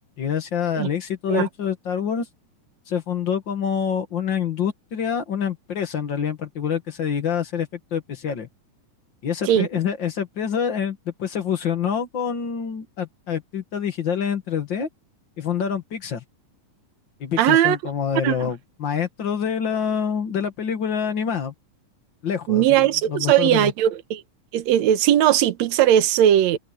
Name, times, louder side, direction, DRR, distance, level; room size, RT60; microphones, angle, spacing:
voice 1, 0.2-2.3 2.9-8.5 9.2-14.9 15.4-16.2 17.2-21.5 22.2-23.7, left 7 dB, 45° left, 1.7 m, -26 dB
voice 2, 17.4-17.8 18.2-18.5 22.5-24.2 24.5-26.6, right 11 dB, 65° right, 2.0 m, -18 dB
omnidirectional pair, 4.1 m